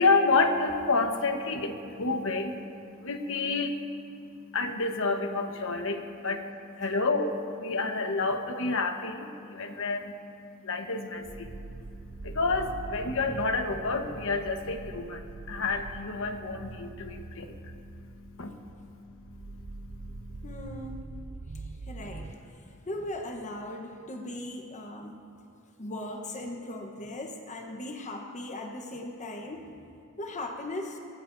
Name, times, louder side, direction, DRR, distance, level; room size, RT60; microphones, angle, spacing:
voice 1, 0.0-20.4, left 3 dB, 65° left, 5 dB, 1.2 m, -30 dB
sound 1, 11.2-22.4, right 3 dB, 30° right, 0.4 m, -43 dB
voice 2, 20.4-21.2 21.9-25.2 25.8-29.7 30.2-31.0, left 1 dB, 35° left, 3 dB, 1.1 m, -38 dB
22.5 x 19.0 x 2.7 m, 2.5 s
head